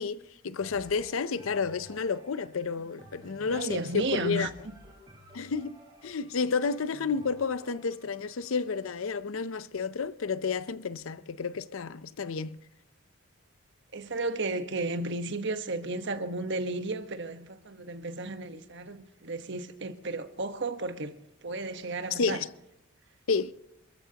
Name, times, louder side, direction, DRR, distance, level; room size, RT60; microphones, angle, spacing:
voice 1, 0.0-4.5 5.3-12.6 22.1-22.5 23.3-23.5, left 5 dB, 70° left, 0.6 m, -31 dB
sound 1, 0.6-10.4 11.0-11.1, equal, 20° right, 4.7 m, -54 dB
voice 2, 3.5-4.5 13.9-21.1 21.4-22.4, right 2 dB, 55° right, 1.2 m, -33 dB
27.5 x 14.5 x 2.9 m
head